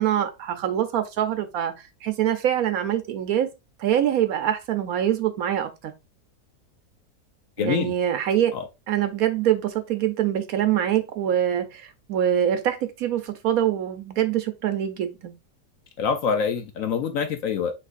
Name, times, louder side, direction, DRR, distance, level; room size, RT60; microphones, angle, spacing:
voice 1, 0.0-1.7 2.0-3.5 3.8-5.9 7.6-8.5 8.9-15.3, right 10 dB, 70° right, 1.0 m, -24 dB
voice 2, 7.6-7.9 8.5-8.7 16.0-17.7, left 6 dB, 65° left, 0.9 m, -25 dB
5.9 x 3.1 x 2.5 m
omnidirectional pair, 1.7 m